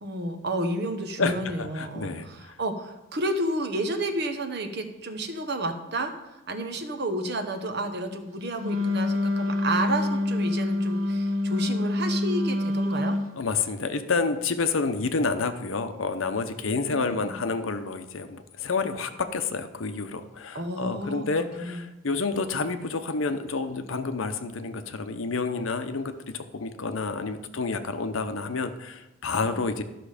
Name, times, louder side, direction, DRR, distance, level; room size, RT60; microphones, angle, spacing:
voice 1, 0.0-13.2 16.9-17.3 20.5-21.3 21.6-21.8 29.4-29.6, right 1 dB, 55° right, 6 dB, 1.0 m, -31 dB
voice 2, 1.2-2.6 13.4-29.8, left 4 dB, 75° left, 9 dB, 0.7 m, -29 dB
Wind instrument woodwind instrument, 8.6-13.3, left 2 dB, 85° right, 0.9 m, -26 dB
12.5 x 6.0 x 5.0 m, 0.99 s
head